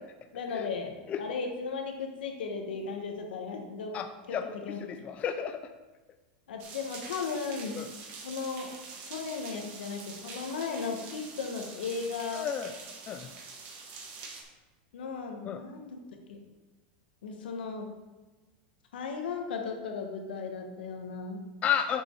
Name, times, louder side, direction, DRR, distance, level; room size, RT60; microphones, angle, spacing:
voice 1, 0.3-4.0 4.3-4.9 6.5-7.8 8.2-8.7 9.0-12.5 14.9-16.0 16.3-16.4 17.2-17.9 18.9-21.4, left 5 dB, 90° left, 3 dB, 1.3 m, -36 dB
voice 2, 4.8-5.6 7.8-7.9 12.3-12.7 13.1-13.3 15.5-15.6 21.6-22.0, left 8 dB, 25° left, 8 dB, 0.4 m, -31 dB
sound 1, 6.6-14.4, right 4 dB, 50° right, 1.6 m, -45 dB
7.0 x 5.5 x 4.6 m, 1.2 s
supercardioid pair, 135°, 5 cm